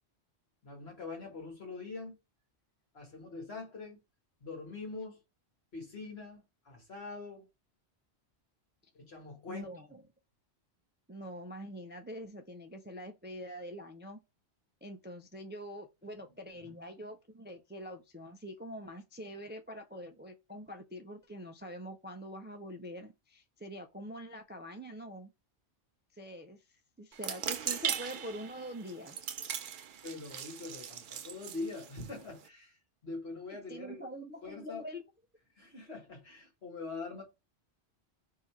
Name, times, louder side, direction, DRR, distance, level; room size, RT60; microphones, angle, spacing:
voice 1, 0.6-2.2 2.9-4.0 4.4-5.2 5.7-7.5 8.9-9.7 16.6-16.7 30.0-32.8 33.0-34.1 34.4-34.8 35.6-37.2, left 3 dB, 70° left, 1.8 m, -43 dB
voice 2, 9.5-10.0 11.1-14.2 14.8-25.3 26.1-26.6 27.0-29.2 33.7-35.0, equal, 15° right, 0.3 m, -45 dB
sound 1, 27.1-32.5, right 8 dB, 60° right, 0.6 m, -39 dB
3.7 x 2.8 x 4.4 m
omnidirectional pair, 1.1 m